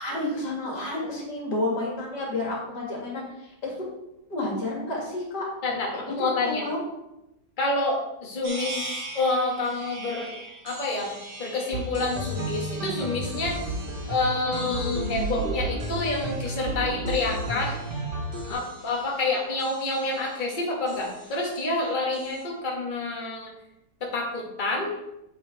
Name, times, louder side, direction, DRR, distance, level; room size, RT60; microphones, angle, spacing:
voice 1, 0.0-3.2 3.6-3.7 4.3-5.4 5.9-6.3 6.6-6.8, left 2 dB, 75° left, -3 dB, 3.0 m, -30 dB
voice 2, 5.6-6.6 7.6-10.3 10.6-11.1 11.4-13.7 14.0-17.7 18.5-23.5 24.0-24.9, left 2 dB, 30° left, -1 dB, 1.5 m, -28 dB
sound 1, 8.4-22.4, right 2 dB, 55° right, 1.9 m, -43 dB
sound 2, 11.7-18.5, right 2 dB, 75° right, 2.3 m, -32 dB
7.5 x 5.6 x 4.8 m, 0.89 s
omnidirectional pair, 1.8 m